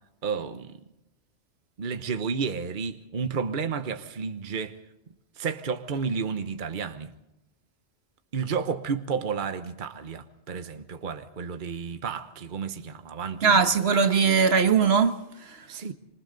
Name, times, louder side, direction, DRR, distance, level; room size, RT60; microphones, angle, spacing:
voice 1, 0.2-0.8 1.8-4.8 5.1-7.1 8.3-13.6 15.7-15.9, right 5 dB, 50° right, 1.1 m, -32 dB
voice 2, 13.4-15.6, right 5 dB, 65° right, 1.4 m, -21 dB
26.5 x 25.0 x 4.0 m
omnidirectional pair, 1.2 m